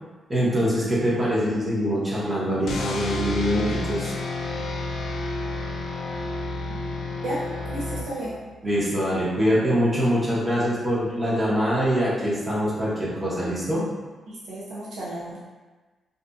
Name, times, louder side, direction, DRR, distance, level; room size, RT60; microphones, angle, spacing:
voice 1, 0.3-4.1 8.6-13.9, equal, 25° right, -7 dB, 0.9 m, -24 dB
sound 1, 2.7-8.5, left 2 dB, 70° left, 0.3 m, -30 dB
voice 2, 7.7-8.3 14.3-15.4, right 1 dB, 80° right, -8 dB, 0.6 m, -33 dB
2.6 x 2.5 x 2.3 m, 1.3 s
cardioid pair, 80°, 0 cm